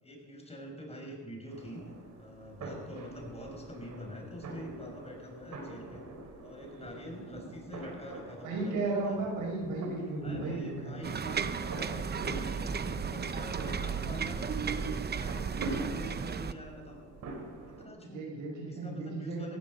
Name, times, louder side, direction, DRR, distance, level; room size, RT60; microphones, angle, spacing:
voice 1, 0.0-1.8 2.2-6.0 6.4-9.3 10.2-12.7 13.0-17.0 17.6-18.3 18.7-19.6, left 1 dB, 20° left, 1 dB, 6.1 m, -45 dB
sound 1, 1.5-17.9, right 2 dB, 65° right, 4.3 m, -45 dB
voice 2, 8.4-11.0 18.0-19.5, right 3 dB, 90° right, -1 dB, 5.8 m, -34 dB
sound 2, 11.0-16.5, right 6 dB, 35° right, 0.9 m, -34 dB
17.0 x 15.5 x 5.4 m, 1.4 s
cardioid pair, 90°, 30 cm